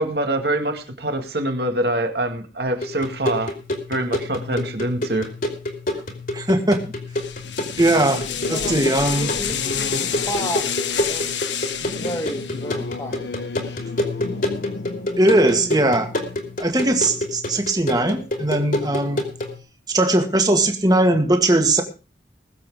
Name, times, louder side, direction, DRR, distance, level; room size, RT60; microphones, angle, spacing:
voice 1, 0.0-3.5 3.9-5.3, right 1 dB, 60° right, 5 dB, 2.1 m, -24 dB
sound 1, 2.8-19.6, left 1 dB, 50° left, 2.9 m, -29 dB
voice 2, 6.3-6.8 7.8-9.3 15.2-16.1 16.6-19.2 19.9-21.8, right 1 dB, 20° right, 5 dB, 1.9 m, -19 dB
sound 2, 7.2-12.7, left 9 dB, 85° left, 1.4 m, -29 dB
Singing / Musical instrument, 7.4-17.5, left 2 dB, 70° left, 1.0 m, -35 dB
voice 3, 9.0-11.4 11.9-13.3 13.6-13.8, equal, 15° left, 4 dB, 1.9 m, -32 dB
20.5 x 7.6 x 4.8 m, 0.34 s
head